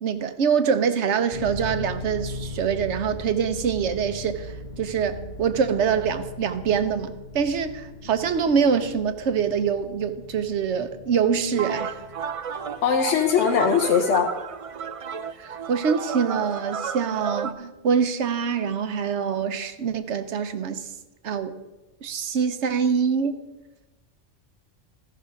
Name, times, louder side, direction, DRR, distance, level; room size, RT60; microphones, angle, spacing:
voice 1, 0.0-12.0 15.4-20.9 21.2-21.6 22.0-23.4, right 6 dB, 80° right, 10 dB, 1.1 m, -25 dB
sound 1, 1.3-14.6, left 2 dB, 45° left, 1.0 m, -39 dB
sound 2, 11.5-17.5, right 6 dB, 60° right, 0.3 m, -32 dB
voice 2, 12.8-14.3, left 7 dB, 85° left, 3 dB, 1.1 m, -20 dB
13.5 x 5.8 x 5.2 m, 1.1 s
omnidirectional pair, 1.2 m